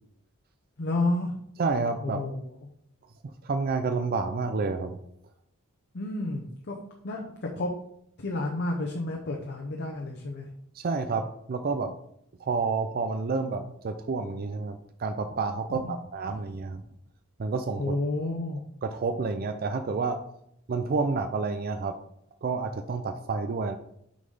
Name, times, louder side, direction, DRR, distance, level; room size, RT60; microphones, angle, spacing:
voice 1, 0.8-1.3 2.0-2.6 5.9-6.8 7.0-7.7 8.2-10.5 15.7-15.9 17.8-18.6, left 2 dB, 50° left, 1 dB, 0.8 m, -30 dB
voice 2, 1.6-2.2 3.4-5.0 10.7-12.0 12.4-16.8 17.4-17.9 18.8-20.2 20.7-22.0 22.4-23.8, right 4 dB, 45° right, 7 dB, 0.4 m, -29 dB
6.3 x 4.0 x 5.4 m, 0.74 s
head